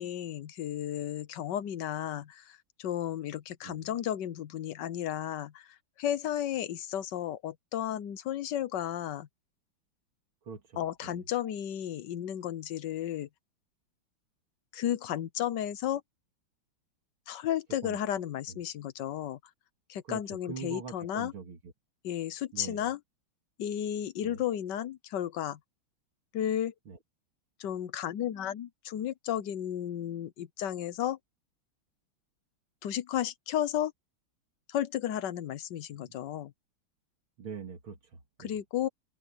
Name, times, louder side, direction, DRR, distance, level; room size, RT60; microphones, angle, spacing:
voice 1, 0.0-9.3 10.8-13.3 14.7-16.0 17.3-19.4 19.9-21.3 22.0-23.0 23.6-25.6 26.3-26.7 27.6-31.2 32.8-33.9 34.7-36.5 38.4-38.9, left 11 dB, 65° left, 1.4 m, -33 dB
voice 2, 10.5-11.2 17.8-18.0 18.5-18.6 20.1-21.6 22.5-22.9 24.2-24.4 26.9-27.0 36.1-36.2 37.4-38.6, right 5 dB, 80° right, 2.9 m, -43 dB
open air
omnidirectional pair, 2.2 m